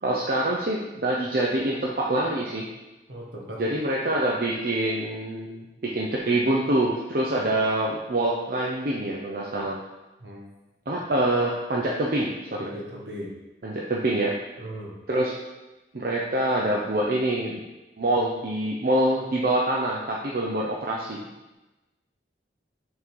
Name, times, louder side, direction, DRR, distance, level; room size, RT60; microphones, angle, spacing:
voice 1, 0.0-2.7 3.6-5.6 5.9-9.8 10.9-12.7 13.6-14.3 15.1-15.3 15.9-17.6 18.0-21.2, right 1 dB, 55° right, -3 dB, 0.6 m, -25 dB
voice 2, 3.1-3.6 10.2-10.4 12.6-13.3 14.6-15.0, equal, 75° right, -2 dB, 1.4 m, -37 dB
6.2 x 3.8 x 4.6 m, 1.1 s
head